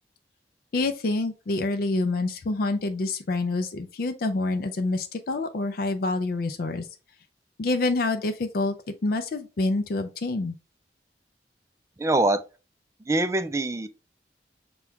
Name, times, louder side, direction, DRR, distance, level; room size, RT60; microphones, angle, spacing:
voice 1, 0.7-6.9 7.6-8.8 9.0-10.6, left 2 dB, 55° left, 0.4 m, -27 dB
voice 2, 12.0-12.4 13.1-13.9, right 2 dB, 15° right, 0.3 m, -23 dB
6.0 x 2.3 x 3.4 m
head